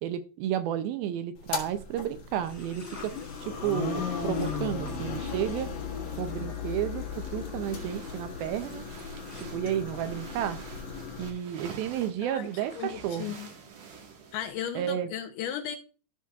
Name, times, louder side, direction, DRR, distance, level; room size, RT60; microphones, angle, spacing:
voice 1, 0.0-5.7 6.2-8.9 9.5-10.6 11.2-13.4 14.7-15.1, right 11 dB, 80° right, 2.3 m, -32 dB
sound 1, 1.4-11.3, left 6 dB, 55° left, 2.7 m, -36 dB
seashore egypt - calm sea, 2.4-9.4, left 3 dB, 25° left, 4.4 m, -54 dB
sound 2, 7.1-14.9, right 6 dB, 60° right, 2.8 m, -48 dB
voice 2, 12.7-13.5 14.3-15.8, left 9 dB, 80° left, 1.9 m, -35 dB
14.0 x 6.1 x 2.3 m
omnidirectional pair, 4.4 m